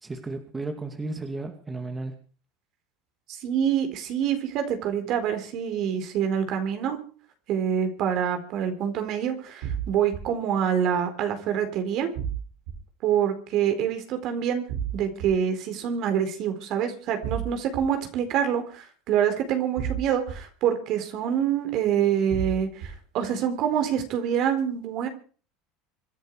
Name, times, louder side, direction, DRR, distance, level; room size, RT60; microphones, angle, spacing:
voice 1, 0.0-2.2, right 2 dB, 15° right, 5 dB, 2.5 m, -34 dB
voice 2, 3.3-7.0 7.5-12.1 13.0-14.6 14.9-25.1, right 8 dB, 55° right, 7 dB, 4.3 m, -26 dB
sound 1, 9.6-10.2 12.2-12.7 14.7-15.3 17.2-17.8 19.8-20.3 22.3-22.9, right 9 dB, 75° right, 6.7 m, -30 dB
26.0 x 10.5 x 4.9 m, 0.41 s
supercardioid pair, 105°, 0 cm